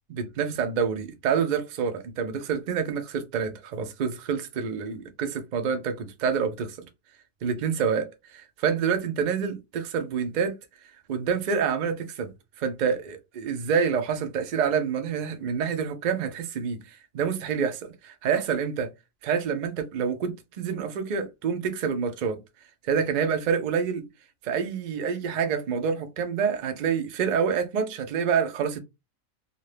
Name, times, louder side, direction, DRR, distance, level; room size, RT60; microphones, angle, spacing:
voice 1, 0.1-6.9 7.4-8.0 8.6-10.6 11.1-12.3 12.6-18.9 19.2-22.4 22.8-24.0 24.4-28.8, right 6 dB, 60° right, 0.4 m, -27 dB
2.6 x 2.4 x 3.2 m
omnidirectional pair, 1.4 m